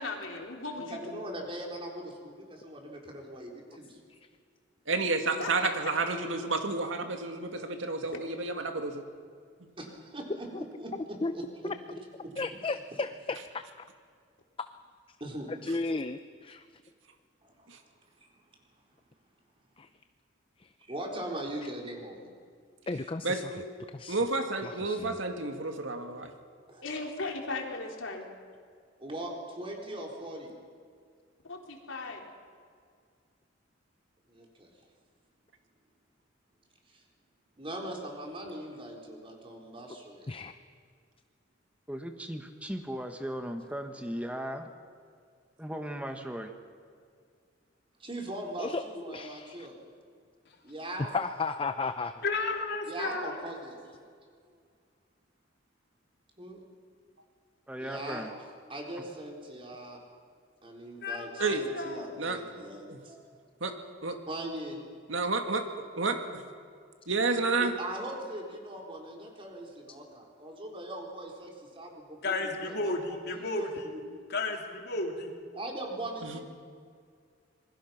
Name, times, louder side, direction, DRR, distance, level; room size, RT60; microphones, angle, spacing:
voice 1, 0.0-1.2 5.4-5.7 26.8-28.3 31.5-32.2, left 3 dB, 90° left, 1 dB, 3.5 m, -37 dB
voice 2, 0.8-4.0 7.6-8.1 9.8-12.0 12.2-12.3 15.2-15.5 17.4-17.7 18.2-18.3 20.9-22.3 26.7-26.8 29.0-30.5 34.3-34.7 36.9-37.0 37.6-40.3 48.0-49.8 50.6-51.2 52.8-53.8 56.4-56.6 57.8-58.3 58.7-60.0 60.6-63.3 64.3-64.8 67.6-74.0 75.5-76.4, right 1 dB, 30° right, 0 dB, 4.1 m, -40 dB
voice 3, 4.9-9.0 17.7-17.8 23.2-23.6 24.1-26.3 61.4-61.7 62.2-62.4 62.9-63.0 63.6-63.7 64.0-64.2 65.1-65.6 66.0-66.4 67.1-67.7 76.2-76.4, right 3 dB, 75° right, 5 dB, 2.2 m, -30 dB
voice 4, 12.4-13.7 15.5-16.6 19.8-19.9 20.6-20.7 22.9-23.5 23.9-24.2 24.6-25.2 40.3-40.5 48.6-49.7 51.1-52.1, left 3 dB, 30° left, 10 dB, 0.6 m, -34 dB
voice 5, 41.9-44.7 45.6-46.5 57.7-58.3, equal, 5° right, 5 dB, 1.4 m, -37 dB
voice 6, 52.2-53.4 61.0-62.0 72.2-73.9 74.3-75.3, left 3 dB, 60° left, 2 dB, 3.1 m, -33 dB
27.0 x 21.5 x 5.9 m, 2.1 s
head